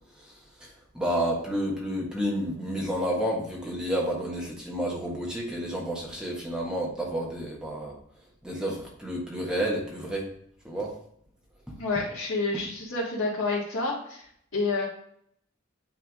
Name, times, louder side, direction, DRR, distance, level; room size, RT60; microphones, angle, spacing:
voice 1, 0.2-8.0 8.4-10.3 10.6-11.0 11.7-11.8, equal, 5° right, -3 dB, 1.5 m, -30 dB
voice 2, 11.8-14.2 14.5-14.9, left 3 dB, 85° left, -8 dB, 1.9 m, -28 dB
9.3 x 3.5 x 3.6 m, 0.67 s
head